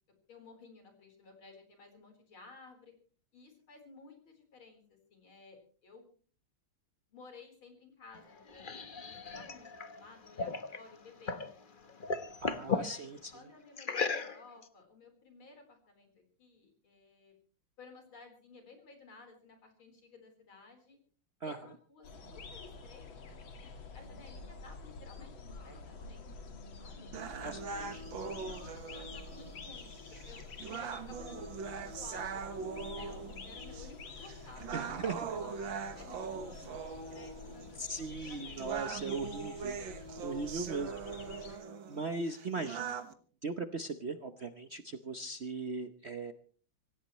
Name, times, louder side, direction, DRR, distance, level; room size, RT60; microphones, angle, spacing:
voice 1, 0.3-2.9 3.3-6.0 7.1-9.7 9.9-10.5 10.8-11.6 12.7-17.3 17.8-21.0 21.4-25.4 25.6-27.1 28.4-31.6 31.9-39.3 40.5-40.7, left 4 dB, 90° left, 4 dB, 4.9 m, -56 dB
sound 1, 8.1-11.5 11.8-12.9 13.8-14.6, left 5 dB, 35° left, 0.8 m, -36 dB
voice 2, 12.4-13.3 21.4-21.6 27.4-28.5 34.7-35.3 37.8-39.8 40.2-41.0 41.5-41.6 41.9-43.0 43.4-46.3, right 3 dB, 55° right, 8 dB, 0.7 m, -39 dB
sound 2, 22.0-41.6, left 4 dB, 70° left, 2.6 m, -49 dB
sound 3, 27.1-43.1, right 5 dB, 70° right, 2.1 m, -42 dB
26.0 x 16.0 x 3.1 m, 0.42 s
omnidirectional pair, 2.2 m